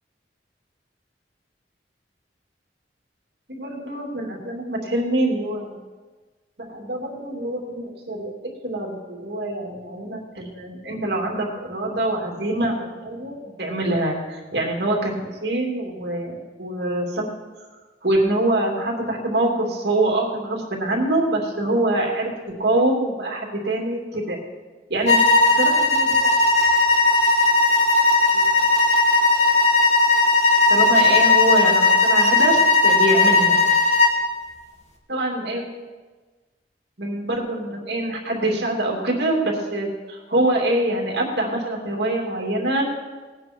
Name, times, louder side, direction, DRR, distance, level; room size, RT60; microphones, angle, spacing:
voice 1, 3.5-5.8 6.6-17.3 18.0-22.3 22.6-24.4 24.9-25.2 25.5-26.4 28.3-28.4 30.7-33.6 35.1-35.6 37.0-42.8, right 1 dB, 65° right, -1 dB, 2.8 m, -24 dB
sound 1, 25.1-34.2, left 3 dB, 40° left, 1.5 m, -17 dB
18.5 x 9.3 x 4.6 m, 1.3 s
head